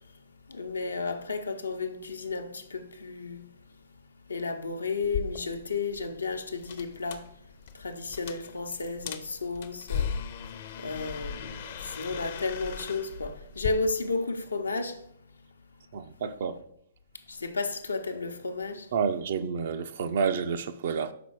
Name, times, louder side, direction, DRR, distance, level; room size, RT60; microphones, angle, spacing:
voice 1, 0.5-3.4 4.3-7.3 7.7-10.1 10.8-15.0 17.3-18.9, left 3 dB, 90° left, 0.8 m, -33 dB
sound 1, 5.0-13.7, left 7 dB, 55° left, 0.6 m, -38 dB
voice 2, 15.9-16.6 18.9-21.1, right 6 dB, 60° right, 0.5 m, -29 dB
5.9 x 4.2 x 4.7 m
hypercardioid pair, 125°, 0 cm